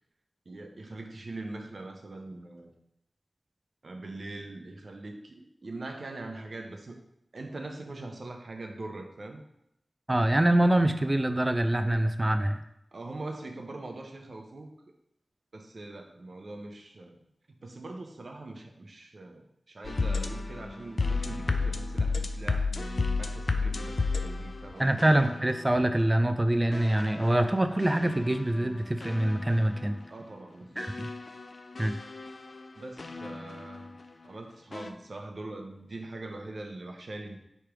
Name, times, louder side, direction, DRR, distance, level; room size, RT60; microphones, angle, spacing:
voice 1, 0.5-2.7 3.8-7.0 7.3-9.4 12.9-14.7 15.5-17.2 17.6-25.0 30.1-30.9 32.7-34.0 34.2-37.4, right 2 dB, 65° right, 4 dB, 0.6 m, -42 dB
voice 2, 10.1-12.6 24.8-30.0 30.8-31.1 31.8-31.9, right 1 dB, 20° right, 8 dB, 0.3 m, -25 dB
sound 1, 19.8-25.9 26.7-30.0 30.8-33.9 34.7-34.9, left 3 dB, 60° left, 0.3 m, -33 dB
3.3 x 3.0 x 4.7 m, 0.80 s
cardioid pair, 50°, 0 cm